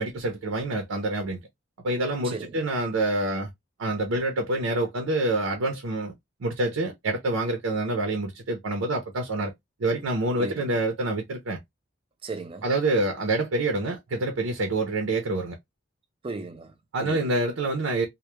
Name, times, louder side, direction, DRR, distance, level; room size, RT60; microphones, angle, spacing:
voice 1, 0.0-1.4 1.8-3.5 3.8-6.1 6.4-9.5 9.8-11.6 12.6-15.6 16.9-18.1, right 2 dB, 85° right, 0.5 m, -27 dB
voice 2, 2.2-2.6 10.4-10.8 12.2-12.7 16.2-17.2, right 3 dB, 25° right, 0.3 m, -36 dB
2.2 x 2.0 x 2.9 m
head